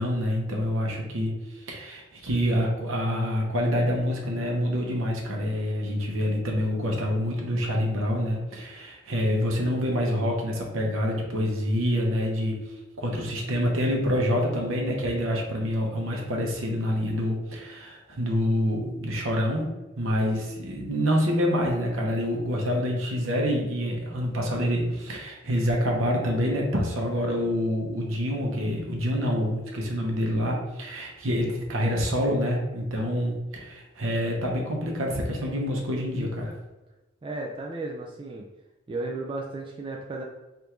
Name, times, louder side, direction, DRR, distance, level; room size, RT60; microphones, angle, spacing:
voice 1, 0.0-12.6 13.0-19.7 20.0-36.5, equal, 65° right, 0 dB, 0.9 m, -27 dB
voice 2, 37.2-38.5 38.9-40.2, right 2 dB, 25° right, -1 dB, 0.3 m, -34 dB
3.5 x 2.5 x 4.4 m, 1.1 s
head